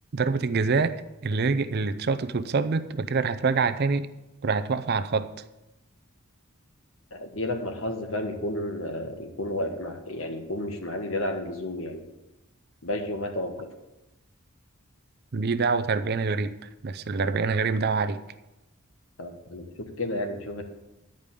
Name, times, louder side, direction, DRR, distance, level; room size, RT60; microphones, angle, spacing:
voice 1, 0.1-0.9 1.2-4.1 4.4-5.3 15.3-16.5 16.8-18.2, right 4 dB, 50° right, 11 dB, 0.5 m, -25 dB
voice 2, 7.1-12.0 12.8-13.7 19.2-20.6, left 1 dB, 65° left, 5 dB, 1.5 m, -32 dB
10.5 x 5.2 x 8.3 m, 0.98 s
head